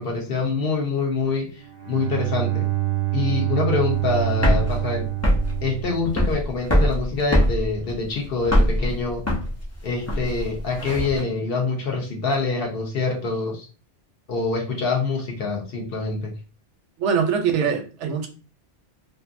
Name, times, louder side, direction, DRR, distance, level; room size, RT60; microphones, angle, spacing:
voice 1, 0.0-1.6 1.9-2.6 3.1-5.1 5.6-9.2 9.8-13.7 14.3-16.3, left 4 dB, 60° left, 0.7 m, -25 dB
Bowed string instrument, 1.6-6.6, right 18 dB, 50° right, 0.6 m, -26 dB
sound 1, 3.9-11.2, equal, 25° left, 0.3 m, -22 dB
voice 2, 17.0-18.3, right 7 dB, 75° right, 0.9 m, -22 dB
2.6 x 2.5 x 2.4 m
omnidirectional pair, 1.2 m